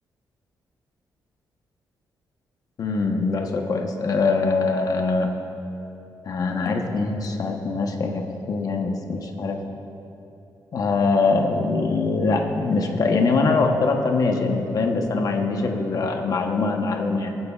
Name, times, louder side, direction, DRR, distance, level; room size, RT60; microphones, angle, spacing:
voice 1, 2.8-5.3 6.2-9.6 10.7-17.4, left 3 dB, 55° left, 3 dB, 1.0 m, -23 dB
24.5 x 9.7 x 2.4 m, 2.9 s
cardioid pair, 120°, 8 cm